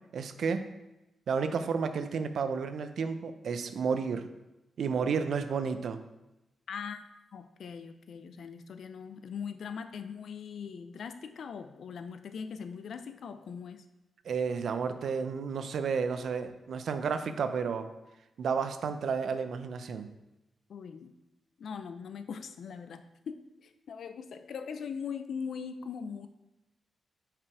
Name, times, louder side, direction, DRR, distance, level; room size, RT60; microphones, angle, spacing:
voice 1, 0.1-0.6 1.3-4.3 4.8-6.0 14.2-17.9 18.4-20.1, right 5 dB, 70° right, 9 dB, 0.5 m, -31 dB
voice 2, 6.7-7.0 7.3-13.9 20.7-21.1 21.6-26.3, left 6 dB, 70° left, 9 dB, 0.5 m, -41 dB
5.9 x 5.0 x 4.6 m, 0.97 s
cardioid pair, 95°, 0 cm